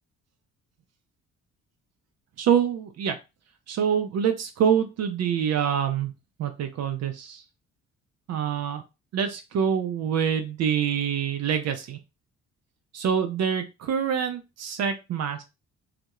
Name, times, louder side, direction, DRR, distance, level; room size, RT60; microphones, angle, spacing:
voice 1, 2.4-3.2 3.7-6.1 6.4-7.4 8.3-8.8 9.1-12.0 12.9-15.4, right 8 dB, 60° right, 7 dB, 0.4 m, -26 dB
2.3 x 2.0 x 2.9 m, 0.26 s
cardioid pair, 90°, 30 cm